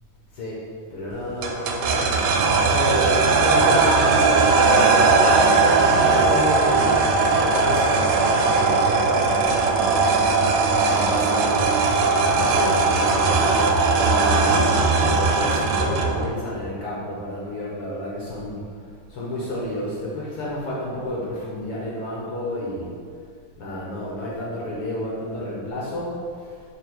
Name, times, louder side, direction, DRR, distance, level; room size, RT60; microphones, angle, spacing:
voice 1, 0.9-7.0 7.2-10.2 10.7-11.7 12.2-13.5 14.0-18.6 19.1-22.9 23.6-26.6, left 1 dB, 70° left, -6 dB, 1.3 m, -30 dB
sound 1, 1.4-16.3, right 4 dB, 90° right, 2.7 m, -19 dB
5.2 x 4.7 x 6.2 m, 2.1 s
omnidirectional pair, 4.4 m